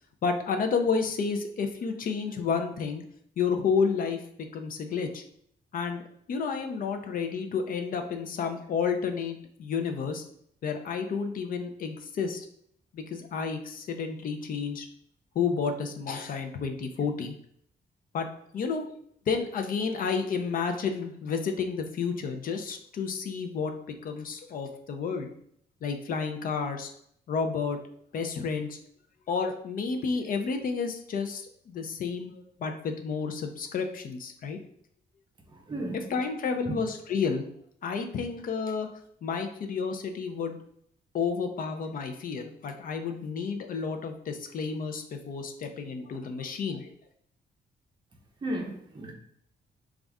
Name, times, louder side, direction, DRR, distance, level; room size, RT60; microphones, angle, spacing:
voice 1, 0.2-3.0 3.4-4.2 4.5-5.2 5.7-10.2 10.6-12.5 12.9-14.9 15.4-17.4 18.1-18.3 18.5-18.8 19.3-23.7 24.0-25.3 25.8-26.9 27.3-27.8 28.1-28.8 29.3-32.3 32.6-34.6 36.1-37.5 37.8-38.9 39.2-40.6 41.1-46.9, left 5 dB, 55° left, 6 dB, 0.5 m, -31 dB
voice 2, 35.5-36.1 48.4-49.1, right 1 dB, 25° right, 1 dB, 0.8 m, -34 dB
5.2 x 2.4 x 3.5 m, 0.67 s
wide cardioid pair, 165°, 17 cm